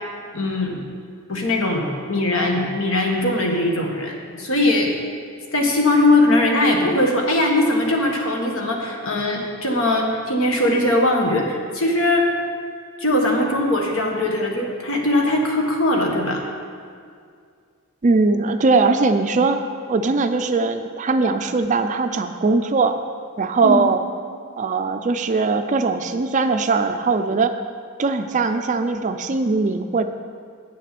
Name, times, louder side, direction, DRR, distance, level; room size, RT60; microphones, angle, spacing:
voice 1, 0.3-0.8 1.3-4.9 5.5-12.3 13.0-16.4 23.6-23.8, left 1 dB, 70° left, 1 dB, 1.5 m, -20 dB
voice 2, 18.0-19.6 19.9-23.0 23.4-24.0 24.6-27.5 28.0-30.0, right 3 dB, 35° right, 8 dB, 0.4 m, -20 dB
8.8 x 6.7 x 7.6 m, 2.2 s
head